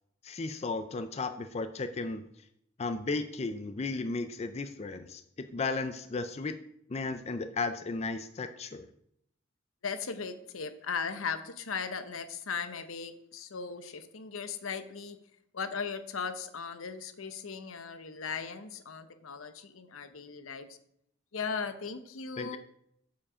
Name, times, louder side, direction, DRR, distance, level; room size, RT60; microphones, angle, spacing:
voice 1, 0.2-2.2 2.8-6.6 6.9-8.9 22.4-22.6, left 3 dB, 30° left, 9 dB, 0.4 m, -34 dB
voice 2, 9.8-15.2 15.5-20.8 21.3-22.6, left 5 dB, 80° left, 10 dB, 0.8 m, -37 dB
7.4 x 7.2 x 4.9 m, 0.74 s
head